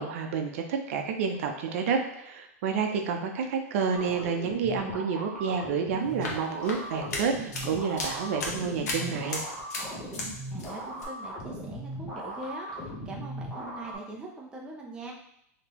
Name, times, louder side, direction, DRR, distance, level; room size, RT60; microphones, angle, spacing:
voice 1, 0.0-9.4, right 6 dB, 55° right, 4 dB, 0.6 m, -29 dB
sound 1, 4.0-14.0, right 1 dB, 10° left, 0.8 m, -39 dB
sound 2, 6.0-10.3 10.6-11.1, left 2 dB, 85° left, 1.0 m, -36 dB
voice 2, 10.5-15.1, right 2 dB, 10° right, -1 dB, 0.4 m, -42 dB
3.6 x 2.9 x 2.9 m, 0.75 s
supercardioid pair, 155°, 9 cm